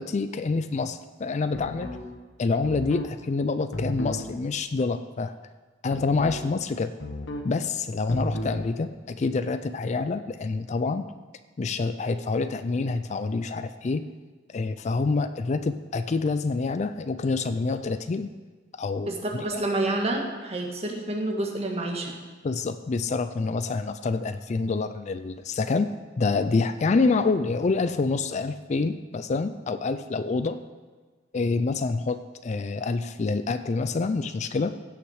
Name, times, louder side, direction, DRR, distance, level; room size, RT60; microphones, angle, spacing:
voice 1, 0.0-1.9 2.4-5.4 5.8-6.9 7.4-11.0 11.6-14.0 14.5-18.3 18.8-19.6 22.4-25.9 26.2-30.6 31.3-34.7, left 3 dB, 40° left, 11 dB, 0.4 m, -27 dB
sound 1, 1.5-2.0 2.6-3.1 3.7-4.2 5.9-6.4 7.0-7.5 8.1-8.6, left 1 dB, 80° left, 1.3 m, -33 dB
voice 2, 19.0-22.2, right 2 dB, 35° right, 1 dB, 1.5 m, -28 dB
16.5 x 5.9 x 4.8 m, 1.4 s
head